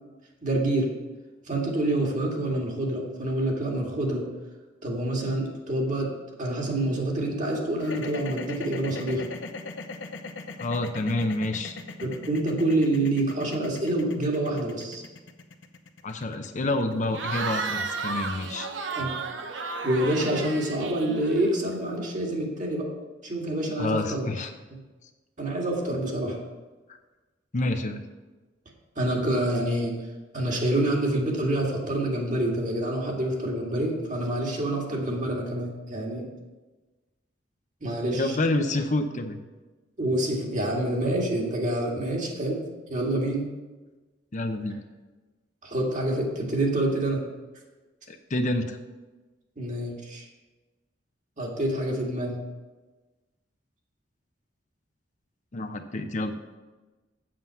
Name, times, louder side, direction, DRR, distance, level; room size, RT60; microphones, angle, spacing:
voice 1, 0.4-0.9 1.5-4.3 4.8-6.1 6.4-9.2 12.0-15.0 18.9-19.1 19.8-22.9 23.2-24.3 25.4-26.4 29.0-29.9 30.3-36.2 37.8-38.4 40.0-42.6 42.9-43.5 45.6-47.2 49.6-50.3 51.4-52.3, right 1 dB, 45° right, -1 dB, 2.0 m, -27 dB
sound 1, 7.8-18.0, left 3 dB, 85° left, 0.9 m, -39 dB
voice 2, 10.6-11.8 16.0-18.7 23.8-24.5 27.5-28.0 38.0-39.4 44.3-44.8 48.1-48.8 55.5-56.4, left 2 dB, 40° left, 7 dB, 0.7 m, -28 dB
Cheering / Crowd, 17.1-21.7, right 4 dB, 85° right, 0.9 m, -33 dB
7.7 x 7.7 x 5.6 m, 1.2 s
head